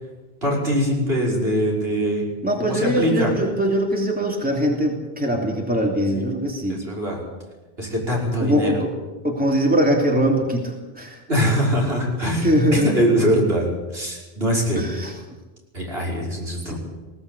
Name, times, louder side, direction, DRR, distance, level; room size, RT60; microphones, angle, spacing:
voice 1, 0.4-2.2 2.6-3.3 6.1-6.2 6.7-7.2 7.8-8.7 11.3-14.8 15.7-16.7, equal, 70° right, -3 dB, 6.0 m, -22 dB
voice 2, 2.4-6.8 8.4-8.9 9.2-11.2 12.4-12.9 14.7-15.1 16.7-16.8, equal, 10° right, 0 dB, 3.2 m, -21 dB
20.0 x 17.5 x 8.4 m, 1.2 s
omnidirectional pair, 1.1 m